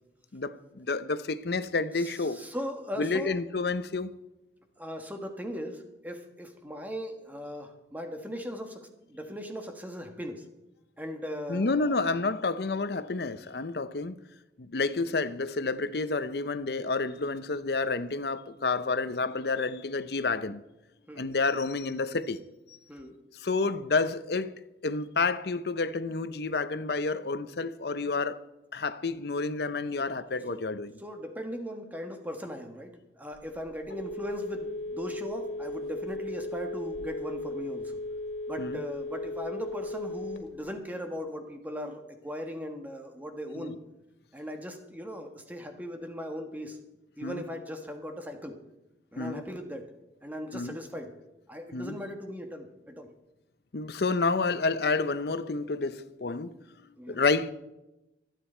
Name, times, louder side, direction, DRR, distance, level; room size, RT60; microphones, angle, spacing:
voice 1, 0.3-2.4 3.0-4.1 11.5-14.2 14.6-20.6 21.2-22.4 23.3-24.5 24.8-28.4 28.7-30.9 38.6-38.8 43.5-43.8 47.2-47.4 49.2-49.4 50.5-50.8 51.7-52.0 53.7-56.6 57.1-57.5, left 3 dB, 60° left, 0.7 m, -29 dB
voice 2, 2.0-3.4 4.8-10.4 11.0-12.1 21.1-21.3 22.9-23.2 30.5-30.6 31.0-38.0 38.5-43.8 44.3-46.8 47.2-48.6 49.1-49.8 50.2-51.1 51.5-53.1 57.0-57.2, equal, 10° right, 1.3 m, -38 dB
Telephone, 33.3-40.7, left 1 dB, 80° left, 2.1 m, -36 dB
25.0 x 9.2 x 4.4 m
head